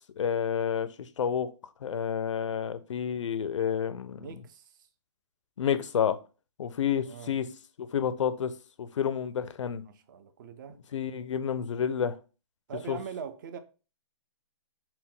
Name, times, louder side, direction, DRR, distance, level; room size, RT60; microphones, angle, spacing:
voice 1, 0.2-0.9 1.2-1.5 1.8-4.3 5.6-6.2 6.6-7.5 7.8-8.5 8.8-9.8 10.9-12.2 12.9-13.0, left 8 dB, 80° left, 0.5 m, -29 dB
voice 2, 4.2-4.9 7.1-7.3 9.8-10.8 12.7-13.6, right 7 dB, 40° right, 0.5 m, -42 dB
4.2 x 2.1 x 3.7 m
hypercardioid pair, 155°, 15 cm